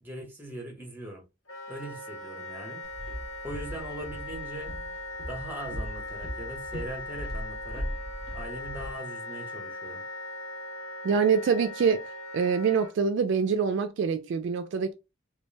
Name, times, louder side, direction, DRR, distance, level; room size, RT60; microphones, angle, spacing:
voice 1, 0.0-1.2 1.7-2.8 3.4-4.7 5.3-7.9 8.3-10.0, right 1 dB, 10° right, 0.7 m, -40 dB
Wind instrument woodwind instrument, 1.5-12.9, left 2 dB, 85° left, 0.9 m, -40 dB
Walk footsteps, 2.8-8.9, equal, 50° left, 0.6 m, -39 dB
voice 2, 11.0-12.0 12.3-14.9, right 6 dB, 60° right, 0.3 m, -25 dB
2.2 x 2.0 x 3.1 m
head